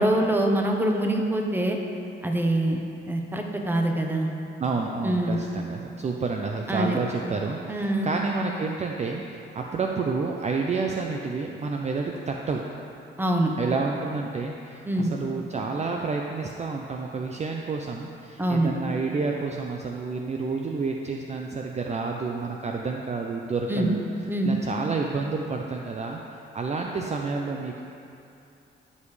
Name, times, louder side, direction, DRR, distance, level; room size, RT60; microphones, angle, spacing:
voice 1, 0.0-1.8 2.2-4.3 5.0-5.4 6.7-7.0 7.7-8.1 13.2-13.5 14.9-15.1 18.4-18.7 23.7-23.9 24.3-24.5, right 1 dB, 10° right, 2 dB, 1.0 m, -24 dB
voice 2, 4.6-12.6 13.6-24.0 24.4-26.2 26.5-27.8, right 4 dB, 35° right, 1 dB, 0.6 m, -29 dB
14.5 x 5.3 x 3.3 m, 2.6 s
cardioid pair, 90°, 20 cm